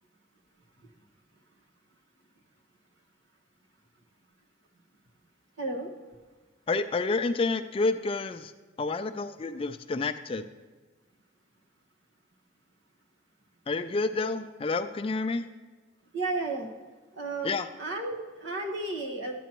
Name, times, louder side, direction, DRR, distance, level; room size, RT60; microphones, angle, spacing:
voice 1, 5.6-5.9 16.1-16.7 17.1-17.5 17.8-19.4, right 2 dB, 75° right, 1 dB, 1.4 m, -32 dB
voice 2, 6.7-8.5 8.8-10.5 13.7-15.5 17.4-17.7, left 3 dB, 30° left, 10 dB, 0.4 m, -29 dB
12.0 x 9.2 x 3.0 m, 1.4 s
head